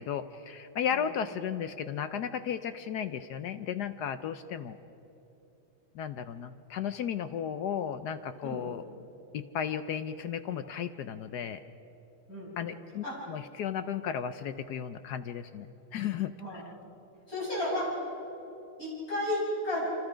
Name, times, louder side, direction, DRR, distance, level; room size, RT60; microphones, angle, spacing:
voice 1, 0.0-4.8 5.9-8.8 9.3-11.6 12.6-15.7 15.9-16.6, left 8 dB, 65° left, 11 dB, 1.1 m, -34 dB
voice 2, 8.4-8.7 12.3-13.2 16.4-16.6 17.3-18.0 18.8-19.9, left 1 dB, 45° left, -5 dB, 6.3 m, -33 dB
27.5 x 25.0 x 5.1 m, 2.9 s
omnidirectional pair, 2.2 m